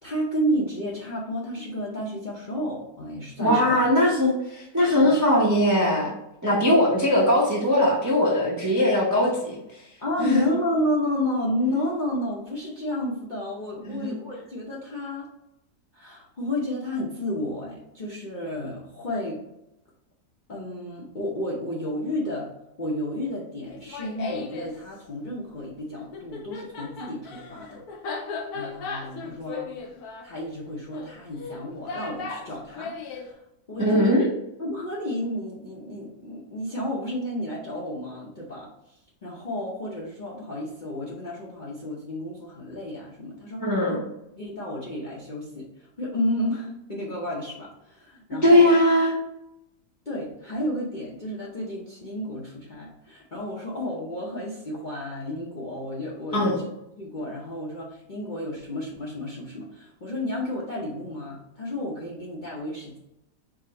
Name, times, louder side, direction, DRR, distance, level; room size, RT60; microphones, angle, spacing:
voice 1, 0.0-3.8 5.0-5.2 10.0-15.3 15.9-19.4 20.5-22.5 22.8-27.8 28.5-29.7 30.2-33.4 33.7-34.2 34.6-44.0 44.4-48.8 50.1-56.7 57.0-63.0, left 1 dB, 45° left, -6 dB, 0.6 m, -31 dB
voice 2, 3.4-6.1 6.4-9.8 10.2-10.5 13.9-14.1 33.8-34.3 43.6-44.0 48.4-49.1 56.3-56.6, left 1 dB, 25° right, -4 dB, 0.4 m, -20 dB
Laughter, 23.7-24.7 26.0-33.3, left 4 dB, 70° left, 1.1 m, -36 dB
5.0 x 2.1 x 3.8 m, 0.85 s
omnidirectional pair, 1.8 m